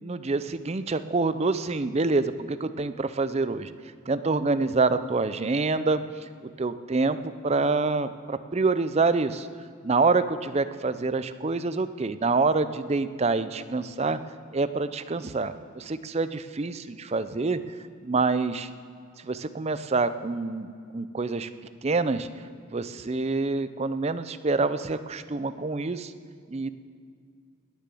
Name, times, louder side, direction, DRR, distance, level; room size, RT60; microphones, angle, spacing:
voice 1, 0.0-3.7 4.1-9.5 9.8-14.2 14.5-17.6 18.0-18.7 19.2-21.5 21.8-22.3 22.7-26.1 26.5-26.7, right 3 dB, 30° right, 13 dB, 0.4 m, -26 dB
19.5 x 6.7 x 7.7 m, 2.3 s
head